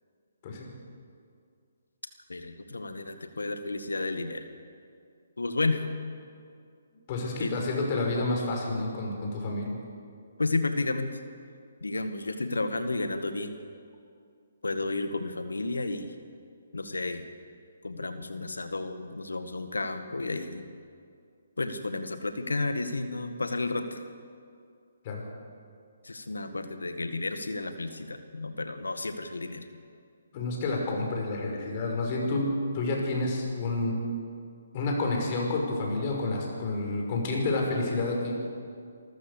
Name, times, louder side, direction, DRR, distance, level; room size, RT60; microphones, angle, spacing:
voice 1, 2.3-4.4 5.4-5.8 7.4-7.5 10.4-11.2 11.8-13.6 14.6-16.1 16.7-17.3 17.8-20.7 21.6-24.0 26.0-29.7, left 2 dB, 85° left, 8 dB, 1.9 m, -32 dB
voice 2, 7.1-9.8 25.0-25.2 30.3-32.5 32.7-33.9 34.7-38.4, left 2 dB, 35° left, 0 dB, 5.7 m, -29 dB
27.0 x 14.0 x 7.0 m, 2.3 s
figure-of-eight pair, 145°, 0 cm